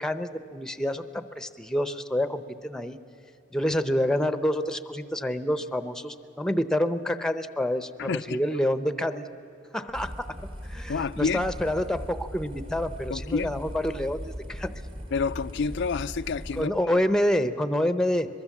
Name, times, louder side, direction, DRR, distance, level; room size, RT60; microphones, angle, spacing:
voice 1, 0.0-3.0 3.5-9.2 9.7-10.3 10.6-14.7 16.6-18.3, left 1 dB, 5° left, 0.8 m, -27 dB
voice 2, 8.0-8.4 10.9-11.5 13.1-13.5 15.1-16.7, left 5 dB, 65° left, 0.4 m, -29 dB
sound 1, 9.9-16.6, equal, 30° right, 1.5 m, -39 dB
23.5 x 22.0 x 7.3 m
head